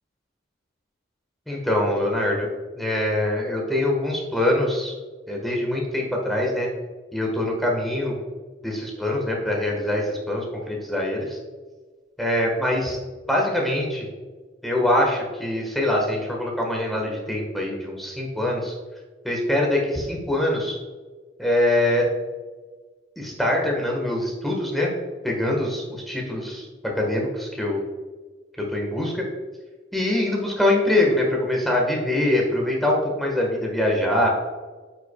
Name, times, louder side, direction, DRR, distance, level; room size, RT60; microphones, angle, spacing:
voice 1, 1.5-2.5 2.7-4.9 5.3-6.7 7.1-8.1 8.6-11.4 12.2-13.0 13.3-14.1 14.6-18.7 19.2-20.8 21.4-22.1 23.2-24.9 25.2-26.7 27.0-27.8 28.6-29.2 29.9-34.4, left 1 dB, ahead, -1 dB, 1.3 m, -23 dB
8.8 x 5.9 x 2.3 m, 1.4 s
head